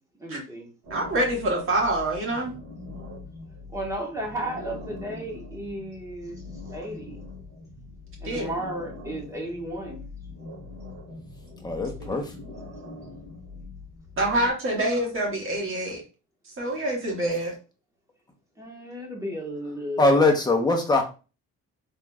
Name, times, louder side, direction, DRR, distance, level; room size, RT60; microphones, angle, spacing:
voice 1, 0.2-0.7 2.9-3.0 3.7-6.4 6.7-7.2 8.2-10.0 18.6-20.2, right 1 dB, 10° right, -1 dB, 1.2 m, -34 dB
sound 1, 0.8-14.5, left 3 dB, 70° right, 1.7 m, -42 dB
voice 2, 0.9-2.6 8.2-8.5 12.0-12.2 14.2-16.0 16.6-17.5, right 1 dB, 40° right, -1 dB, 1.6 m, -26 dB
voice 3, 11.6-12.3 20.0-21.0, left 2 dB, 15° left, 2 dB, 0.8 m, -21 dB
3.9 x 3.5 x 2.3 m, 0.33 s
cardioid pair, 145°, 31 cm